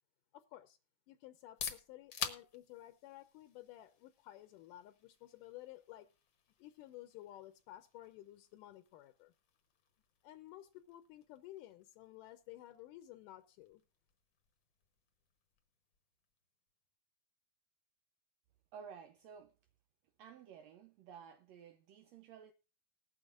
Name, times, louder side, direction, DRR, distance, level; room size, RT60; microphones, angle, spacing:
voice 1, 0.3-0.8 1.1-6.1 6.6-9.3 10.2-13.8, left 14 dB, 80° left, 2.3 m, -54 dB
sound 1, 1.3-17.0, left 7 dB, 55° left, 1.3 m, -51 dB
voice 2, 18.7-19.5 20.2-22.5, right 7 dB, 80° right, 1.5 m, -54 dB
20.0 x 8.1 x 2.5 m
omnidirectional pair, 3.8 m